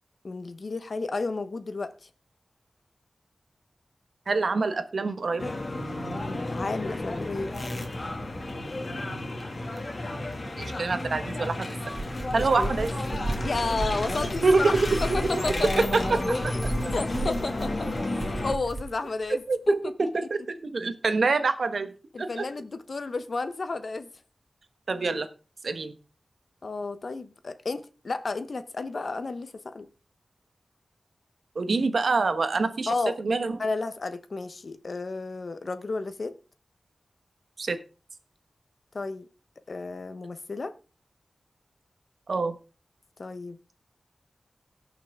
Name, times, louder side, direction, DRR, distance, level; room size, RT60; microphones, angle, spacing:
voice 1, 0.2-2.1 6.1-7.5 12.3-12.7 13.4-15.9 16.9-18.1 18.4-20.3 22.1-24.1 26.6-29.9 32.9-33.2 33.6-36.4 38.9-39.3 39.7-40.7 43.2-43.8, left 3 dB, 65° left, 1.0 m, -32 dB
voice 2, 4.3-5.5 10.6-11.7 12.3-12.9 14.4-15.2 15.8-16.7 19.5-21.9 22.2-22.4 24.9-25.3 25.6-26.0 31.5-33.6 37.6-37.8 42.3-42.5, right 3 dB, 80° right, 1.2 m, -26 dB
sound 1, 5.4-18.6, left 2 dB, 50° left, 2.0 m, -32 dB
sound 2, 11.9-18.9, right 2 dB, 50° right, 2.1 m, -34 dB
17.5 x 6.0 x 3.6 m
wide cardioid pair, 55°, 0 cm